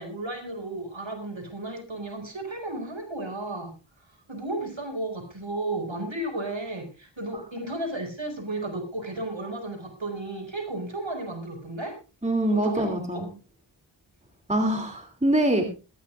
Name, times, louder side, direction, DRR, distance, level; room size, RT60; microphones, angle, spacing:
voice 1, 0.0-3.7 4.1-11.9 12.5-13.2, right 2 dB, 70° right, 4 dB, 5.4 m, -33 dB
voice 2, 12.2-13.3 14.5-15.7, right 1 dB, 15° right, 4 dB, 2.7 m, -24 dB
20.5 x 15.5 x 2.4 m, 0.33 s
wide cardioid pair, 50°, 47 cm